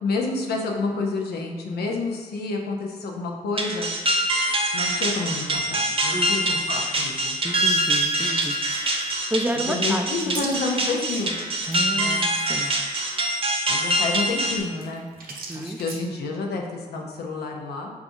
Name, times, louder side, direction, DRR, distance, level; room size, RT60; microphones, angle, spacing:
voice 1, 0.0-3.9 4.7-7.4 9.6-11.3 12.0-12.2 13.7-15.0 15.5-17.9, left 3 dB, 75° left, 0 dB, 0.6 m, -29 dB
sound 1, 3.6-14.6, right 1 dB, 35° right, 0.7 m, -24 dB
voice 2, 6.1-6.5 7.4-8.6 9.3-10.5 11.7-12.7 15.3-15.8, right 1 dB, 10° right, 5 dB, 0.3 m, -30 dB
sound 2, 7.6-11.4 11.6-11.8 12.1-12.2 12.5-16.0, right 3 dB, 70° right, 0.6 m, -38 dB
4.8 x 2.3 x 2.6 m, 1.6 s
supercardioid pair, 40°, 17 cm